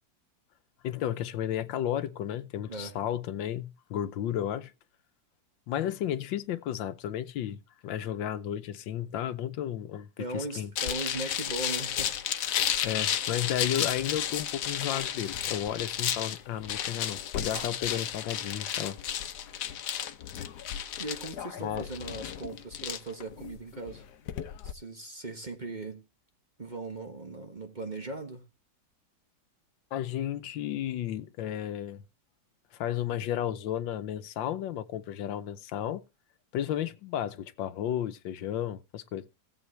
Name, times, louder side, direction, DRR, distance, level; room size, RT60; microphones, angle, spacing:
voice 1, 0.8-4.7 5.7-10.7 12.8-19.0 21.6-21.9 29.9-32.0 32.7-36.0 36.5-39.2, left 11 dB, 85° left, 1.5 m, -33 dB
voice 2, 10.2-12.2 21.0-24.1 24.6-26.0 26.6-28.4, right 2 dB, 25° right, 1.3 m, -38 dB
sound 1, 10.8-24.7, left 10 dB, 70° left, 1.3 m, -33 dB
Clapping, 17.5-19.5 19.8-19.9, right 5 dB, 50° right, 1.7 m, -49 dB
16.5 x 7.9 x 3.2 m
omnidirectional pair, 2.0 m